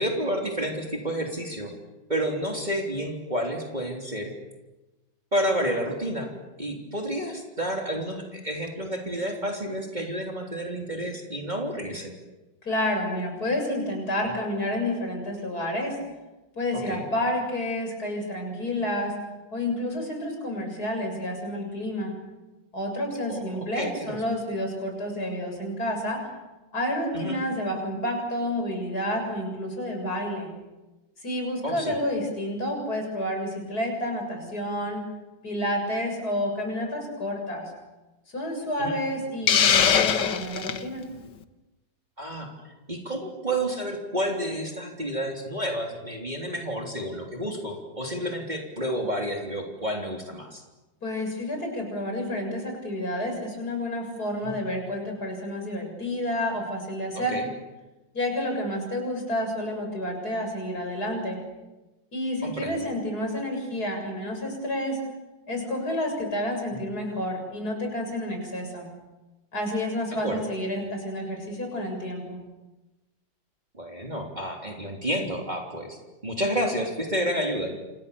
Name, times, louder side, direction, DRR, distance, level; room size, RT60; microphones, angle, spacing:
voice 1, 0.0-1.7 2.1-4.3 5.3-6.3 6.6-12.2 16.9-17.1 23.3-24.2 27.1-27.4 31.6-31.9 38.8-39.0 42.2-50.6 54.4-54.6 57.3-57.5 62.4-62.8 66.7-66.8 70.2-70.4 73.7-77.7, equal, 25° right, 1 dB, 3.5 m, -30 dB
voice 2, 12.6-16.0 16.6-19.2 19.5-22.1 22.7-26.2 26.7-30.5 31.2-35.0 35.4-37.7 38.3-41.0 51.0-57.4 58.1-61.4 62.1-65.0 65.5-68.9 69.5-72.4, left 1 dB, 55° left, 3 dB, 7.7 m, -29 dB
Hiss, 39.5-40.8, left 7 dB, 70° left, 1.9 m, -21 dB
28.5 x 28.0 x 7.1 m, 1.1 s
omnidirectional pair, 2.0 m